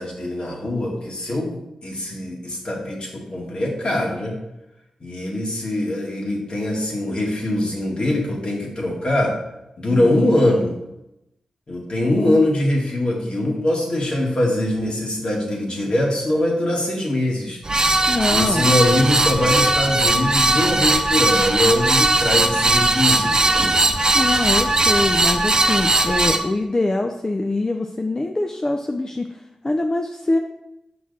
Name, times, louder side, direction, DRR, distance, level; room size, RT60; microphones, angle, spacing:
voice 1, 0.0-4.3 5.0-9.3 9.8-10.8 11.7-17.6 18.3-23.4, left 1 dB, 55° left, -2 dB, 2.2 m, -22 dB
sound 1, 17.6-26.4, right 2 dB, 35° right, 0.8 m, -18 dB
voice 2, 18.1-18.7 23.9-30.4, left 2 dB, 30° left, 4 dB, 0.6 m, -24 dB
6.1 x 5.6 x 4.2 m, 0.90 s
cardioid pair, 45°, 2 cm